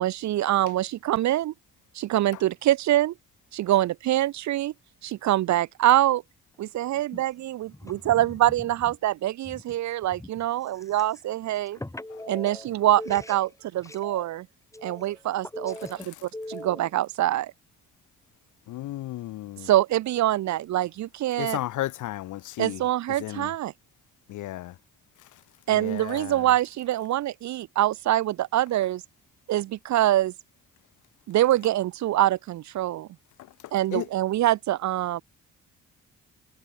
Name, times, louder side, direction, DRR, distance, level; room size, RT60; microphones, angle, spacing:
voice 1, 0.0-1.5 1.9-3.1 3.5-4.7 5.0-6.2 6.6-11.8 12.3-14.5 14.8-15.8 16.1-16.2 16.5-17.5 19.6-21.6 22.6-23.7 25.7-29.0 29.5-30.3 31.3-33.1 33.7-35.2, right 14 dB, 65° right, 0.7 m, -24 dB
voice 2, 7.7-8.1 10.2-10.3 11.8-12.7 13.0-13.4 13.9-14.3 14.7-15.2 15.5-16.9, left 1 dB, 10° left, 4.3 m, -40 dB
voice 3, 18.7-19.7 21.4-22.8 23.2-23.5 24.3-24.8 25.2-25.4 25.7-26.5 33.4-34.1, left 15 dB, 80° left, 1.1 m, -34 dB
cardioid pair, 90°, 30 cm